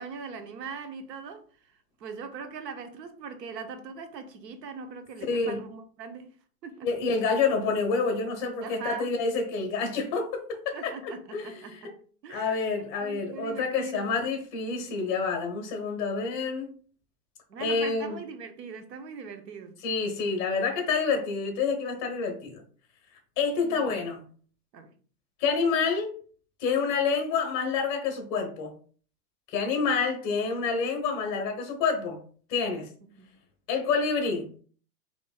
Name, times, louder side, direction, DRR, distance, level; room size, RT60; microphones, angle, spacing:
voice 1, 0.0-1.4 2.0-6.3 6.6-6.9 8.6-9.1 10.7-14.2 17.5-19.8 23.5-24.0 24.7-24.9 33.2-33.3, right 5 dB, 80° right, 1.0 m, -41 dB
voice 2, 5.3-5.6 6.8-11.9 12.3-16.7 17.6-18.2 19.8-22.6 23.4-24.2 25.4-26.2 26.6-28.7 29.5-32.2 32.5-32.9 33.7-34.5, left 5 dB, 30° left, 1.1 m, -28 dB
4.4 x 3.0 x 2.3 m
hypercardioid pair, 145°, 49 cm